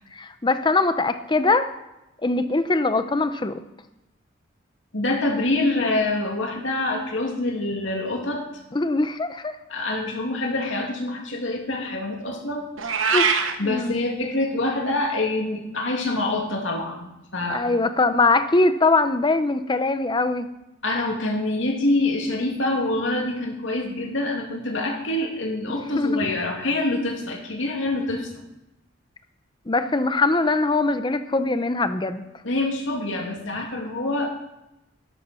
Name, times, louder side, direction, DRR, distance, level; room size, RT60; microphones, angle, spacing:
voice 1, 0.1-1.7 2.2-3.6 8.7-9.6 13.0-13.3 13.6-14.0 17.5-20.5 25.7-26.2 29.7-32.2, left 3 dB, 25° left, 11 dB, 0.6 m, -22 dB
voice 2, 4.9-8.5 9.7-12.7 13.6-17.7 20.8-28.3 32.4-34.3, left 2 dB, 70° left, 1 dB, 2.6 m, -26 dB
Meow, 12.8-13.5, right 6 dB, 85° right, 1.2 m, -21 dB
12.5 x 11.5 x 4.4 m, 0.92 s
head